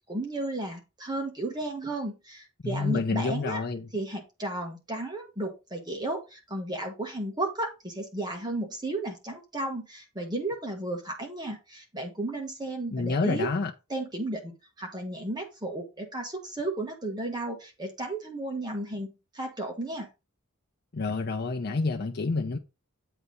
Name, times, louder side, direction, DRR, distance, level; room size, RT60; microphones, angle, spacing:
voice 1, 0.1-3.6 3.9-13.5 13.9-20.1, right 2 dB, 20° right, 1.4 m, -34 dB
voice 2, 2.6-3.9 12.9-13.7 20.9-22.6, left 3 dB, 45° left, 0.6 m, -28 dB
8.1 x 3.3 x 5.3 m
head